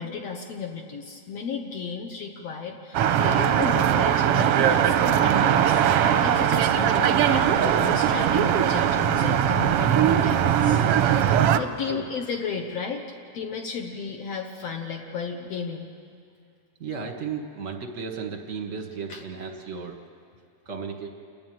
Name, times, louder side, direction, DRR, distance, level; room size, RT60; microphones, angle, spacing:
voice 1, 0.0-10.9 11.5-15.9 19.1-19.2, left 5 dB, 65° left, 2 dB, 2.0 m, -34 dB
sound 1, 2.9-11.6, right 9 dB, 75° right, 1.4 m, -20 dB
voice 2, 16.8-20.0 20.7-21.1, right 5 dB, 45° right, 3 dB, 1.0 m, -34 dB
29.0 x 10.5 x 9.2 m, 2.3 s
omnidirectional pair, 3.4 m